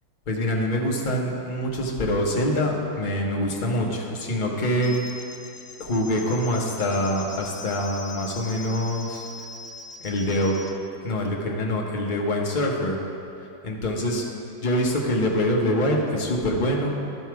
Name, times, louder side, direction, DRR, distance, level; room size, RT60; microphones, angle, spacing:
voice 1, 0.3-5.0 5.8-9.3 10.0-10.5 11.0-13.0 13.6-14.2 14.6-17.0, left 1 dB, 40° left, -1 dB, 0.7 m, -25 dB
sound 1, 4.8-10.7, left 4 dB, 70° left, 0.7 m, -41 dB
11.0 x 5.5 x 4.7 m, 2.6 s
omnidirectional pair, 2.0 m